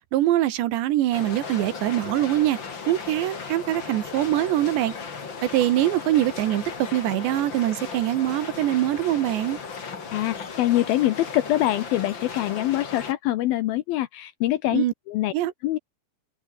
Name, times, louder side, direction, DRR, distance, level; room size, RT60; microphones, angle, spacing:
voice 1, 0.1-2.6 2.9-4.9 5.4-9.6 14.7-14.9 15.3-15.5, right 14 dB, 80° right, 3.6 m, -23 dB
sound 1, 1.1-13.1, left 5 dB, 30° left, 2.7 m, -36 dB
voice 2, 10.1-15.3 15.6-15.8, left 14 dB, 75° left, 2.4 m, -24 dB
omnidirectional pair, 5.0 m